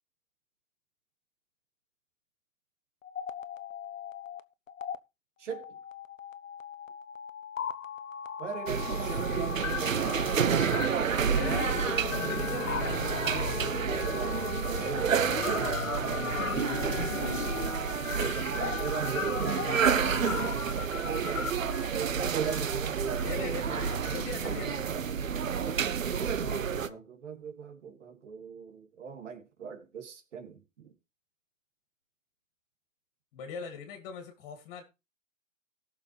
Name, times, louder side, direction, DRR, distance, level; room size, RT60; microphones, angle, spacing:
sound 1, 3.0-4.4 4.7-5.0 5.5-21.5, left 8 dB, 80° left, 0.9 m, -37 dB
voice 1, 5.4-5.8 8.4-10.8 13.1-15.5 18.2-20.0 22.1-23.1 26.8-30.9, right 7 dB, 65° right, 3.1 m, -40 dB
sound 2, 8.7-26.9, right 7 dB, 80° right, 1.1 m, -30 dB
voice 2, 11.3-11.8 12.2-13.0 16.3-17.6 20.4-20.6 23.2-24.9 26.3-27.1 33.3-34.8, left 5 dB, 35° left, 2.6 m, -41 dB
sound 3, 12.7-23.5 23.9-24.8, left 3 dB, ahead, 3.4 m, -51 dB
18.0 x 6.7 x 3.3 m
hypercardioid pair, 145°, 39 cm